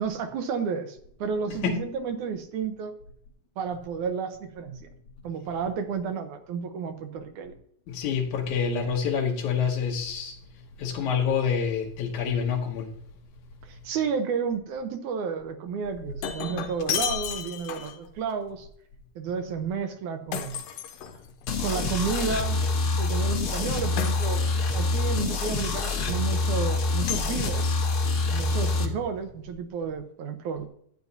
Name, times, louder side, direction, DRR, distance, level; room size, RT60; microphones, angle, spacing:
voice 1, 0.0-2.9 3.6-4.9 5.2-7.5 13.6-18.7 19.2-20.6 21.6-22.7 23.0-27.8 28.3-30.7, right 6 dB, 75° right, 2.2 m, -31 dB
voice 2, 7.9-10.4 10.8-12.9, left 6 dB, 70° left, 2.3 m, -27 dB
Shatter, 15.8-18.1 20.3-21.6 24.0-24.8 27.1-28.2, left 8 dB, 90° left, 2.5 m, -33 dB
sound 1, 21.5-28.9, left 3 dB, 55° left, 1.8 m, -26 dB
12.0 x 9.2 x 2.7 m
omnidirectional pair, 3.9 m